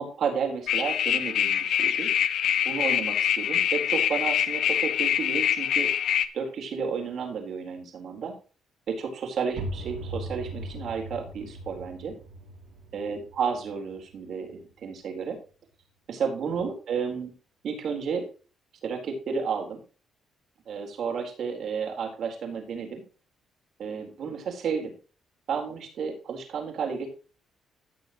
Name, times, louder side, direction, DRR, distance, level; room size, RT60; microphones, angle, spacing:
voice 1, 0.0-2.1 2.6-5.9 6.3-8.3 8.9-12.1 12.9-15.4 16.1-17.3 17.6-18.3 18.8-19.8 20.7-23.0 23.8-24.9 25.5-27.1, right 6 dB, 65° right, 3 dB, 3.9 m, -32 dB
sound 1, 0.7-6.3, left 9 dB, 70° left, 0.9 m, -25 dB
sound 2, 9.5-15.0, right 1 dB, 90° right, 1.4 m, -39 dB
16.0 x 6.6 x 3.1 m, 0.36 s
cardioid pair, 90°, 0 cm